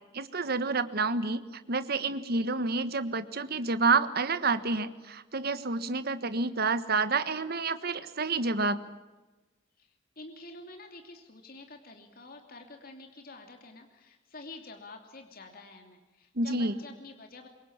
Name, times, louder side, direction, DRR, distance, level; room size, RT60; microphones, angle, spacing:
voice 1, 0.1-1.4 1.7-8.8 16.3-16.7, right 3 dB, 55° right, 12 dB, 1.4 m, -29 dB
voice 2, 9.8-17.5, left 2 dB, 50° left, 4 dB, 2.9 m, -48 dB
25.5 x 22.5 x 7.4 m, 1.1 s
head